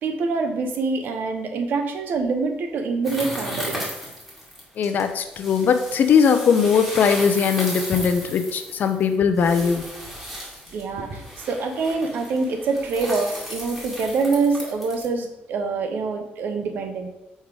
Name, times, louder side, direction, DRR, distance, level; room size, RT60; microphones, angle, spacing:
voice 1, 0.0-3.8 10.2-10.4 10.7-17.1, right 4 dB, 65° right, 6 dB, 0.9 m, -25 dB
sound 1, 3.0-15.1, equal, 5° right, 2.1 m, -35 dB
voice 2, 4.8-9.9, left 6 dB, 55° left, 8 dB, 0.6 m, -20 dB
5.4 x 3.7 x 4.8 m, 0.93 s
cardioid pair, 110°, 4 cm